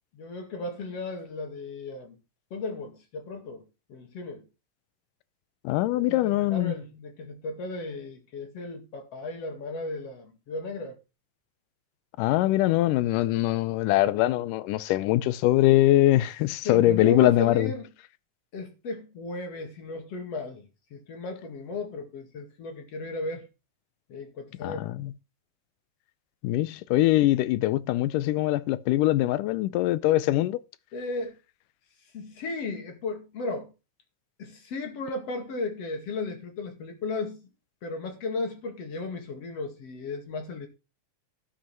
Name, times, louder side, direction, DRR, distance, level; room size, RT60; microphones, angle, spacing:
voice 1, 0.1-2.2 2.5-3.6 3.9-4.5 6.0-11.0 16.6-17.9 18.5-23.5 24.1-24.9 30.9-31.4 32.1-33.7 34.4-37.4 37.8-40.7, left 2 dB, 50° left, 3.1 m, -35 dB
voice 2, 5.6-6.7 12.2-17.7 24.6-25.1 26.4-30.6, left 15 dB, 85° left, 2.3 m, -23 dB
13.0 x 5.7 x 5.7 m
omnidirectional pair, 3.7 m